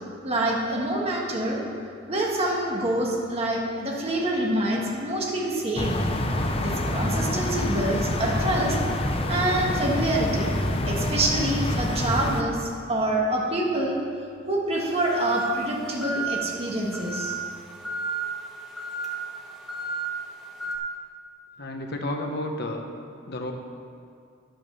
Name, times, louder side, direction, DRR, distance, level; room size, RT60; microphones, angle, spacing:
voice 1, 0.2-1.6 2.1-6.0 6.6-8.8 9.3-10.5 10.9-14.0 14.5-17.3, right 1 dB, 30° right, -2 dB, 1.7 m, -26 dB
sound 1, 5.8-12.4, left 1 dB, 30° left, 0.7 m, -26 dB
sound 2, 14.7-20.8, right 4 dB, ahead, 1.4 m, -33 dB
voice 2, 21.6-22.8 23.3-23.5, left 1 dB, 55° left, 2 dB, 1.1 m, -31 dB
10.5 x 5.8 x 6.9 m, 2.3 s
head